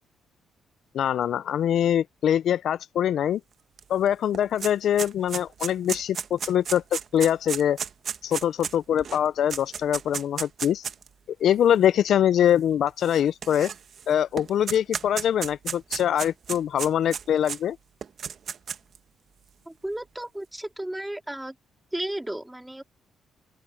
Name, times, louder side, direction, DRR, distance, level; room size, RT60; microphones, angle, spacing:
voice 1, 0.9-3.4 3.9-7.8 8.2-10.8 11.4-13.7 14.1-17.8, left 10 dB, 70° left, 0.4 m, -23 dB
sound 1, 3.8-3.9 4.1-11.1 11.8-11.9 13.0-14.0 14.4-17.6 18.0-19.0, right 7 dB, 55° right, 1.2 m, -33 dB
voice 2, 19.6-21.5 21.9-22.8, right 1 dB, 10° right, 3.3 m, -34 dB
open air
cardioid pair, 90°, 0 cm